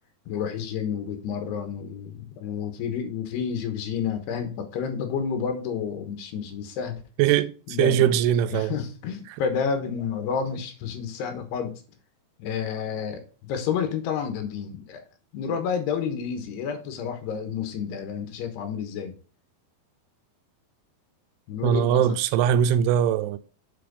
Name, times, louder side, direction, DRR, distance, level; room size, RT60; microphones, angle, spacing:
voice 1, 0.3-7.0 7.7-8.1 8.5-11.7 12.4-15.0 15.3-19.1 21.5-22.2, left 7 dB, 90° left, 3.4 m, -30 dB
voice 2, 7.2-8.7 21.6-23.4, right 10 dB, 85° right, 2.5 m, -21 dB
7.6 x 4.7 x 5.2 m
omnidirectional pair, 4.6 m